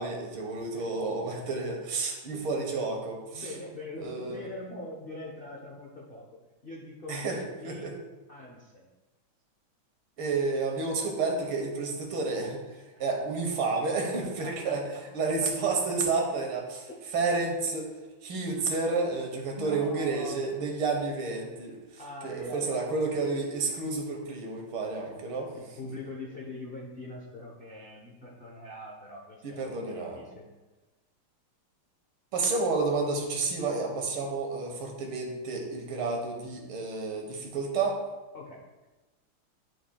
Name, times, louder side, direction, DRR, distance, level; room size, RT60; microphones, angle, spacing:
voice 1, 0.0-3.5 4.0-4.4 7.1-7.9 10.2-14.8 15.1-17.9 18.2-25.5 29.4-30.2 32.3-38.0, right 3 dB, 75° right, 1 dB, 1.9 m, -30 dB
voice 2, 3.3-7.2 7.6-7.9 8.3-8.9 12.9-13.1 14.4-14.8 16.9-17.0 19.5-20.6 22.0-22.9 25.2-30.4 38.3-38.6, left 1 dB, 55° left, -3 dB, 0.6 m, -43 dB
11.0 x 4.8 x 2.2 m, 1.2 s
omnidirectional pair, 2.3 m